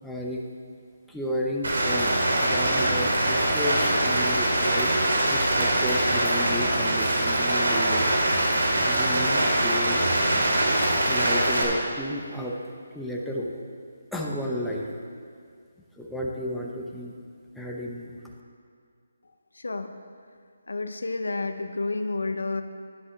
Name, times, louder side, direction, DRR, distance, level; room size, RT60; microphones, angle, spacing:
voice 1, 0.0-0.4 1.1-8.1 8.8-10.0 11.1-13.6 14.1-15.0 15.9-17.2 17.5-18.2, left 1 dB, ahead, -3 dB, 0.9 m, -33 dB
Rain, 1.6-11.6, right 1 dB, 80° right, 2.6 m, -23 dB
voice 2, 19.6-19.9 20.7-22.6, left 3 dB, 80° left, 8 dB, 0.8 m, -30 dB
12.0 x 10.5 x 3.3 m, 2.1 s
figure-of-eight pair, 155°, 0 cm